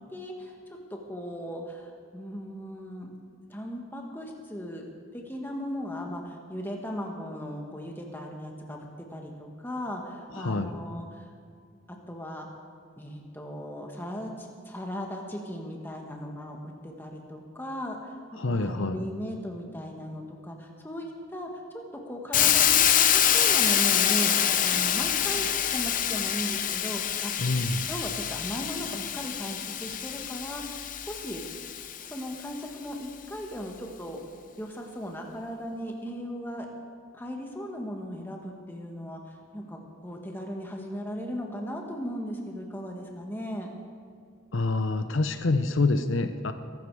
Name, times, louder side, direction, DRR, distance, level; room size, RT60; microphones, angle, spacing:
voice 1, 0.1-0.5 0.9-3.2 3.5-4.9 5.1-11.3 12.1-12.5 13.0-18.2 18.5-21.5 22.0-25.5 25.7-27.3 27.6-31.4 32.0-34.2 34.6-36.7 37.1-43.7, equal, 10° left, 1 dB, 1.7 m, -37 dB
voice 2, 10.3-10.7 18.4-19.0 27.4-27.8 44.5-46.5, left 3 dB, 75° left, 9 dB, 0.8 m, -26 dB
Hiss, 22.3-32.2, left 10 dB, 40° left, 0.7 m, -26 dB
22.0 x 12.5 x 4.9 m, 2.2 s
head